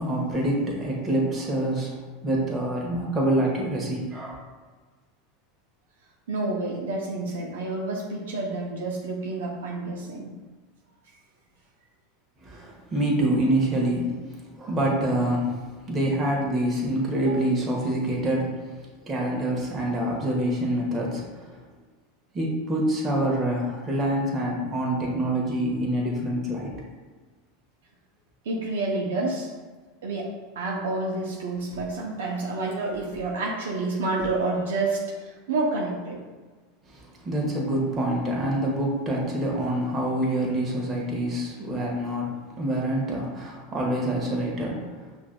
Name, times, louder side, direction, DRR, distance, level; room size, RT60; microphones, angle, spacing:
voice 1, 0.0-4.4 12.4-14.2 14.6-15.6 15.8-18.6 19.1-21.6 22.3-26.8 36.9-45.0, right 1 dB, 30° right, -2 dB, 1.1 m, -26 dB
voice 2, 6.3-10.3 17.3-17.4 28.4-29.5 30.0-36.2, right 2 dB, 85° right, -1 dB, 0.6 m, -29 dB
5.7 x 2.6 x 2.2 m, 1.4 s
supercardioid pair, 110°, 0 cm